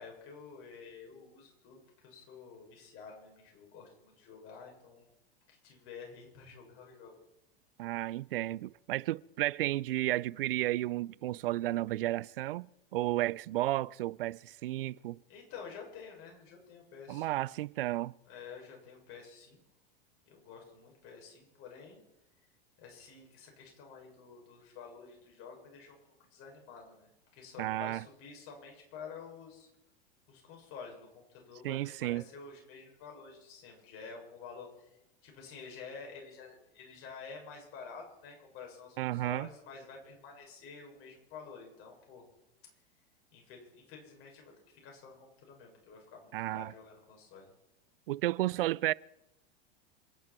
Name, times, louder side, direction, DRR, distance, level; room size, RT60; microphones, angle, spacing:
voice 1, 0.0-5.1 5.5-7.2 15.3-17.4 18.3-19.6 20.3-22.0 22.8-26.0 26.3-29.7 30.3-42.2 43.3-47.5, left 5 dB, 50° left, 7.1 m, -50 dB
voice 2, 7.8-15.2 17.1-18.1 27.6-28.0 31.6-32.2 39.0-39.5 46.3-46.7 48.1-48.9, right 16 dB, 70° right, 0.5 m, -33 dB
27.5 x 10.5 x 4.6 m
hypercardioid pair, 95°, 29 cm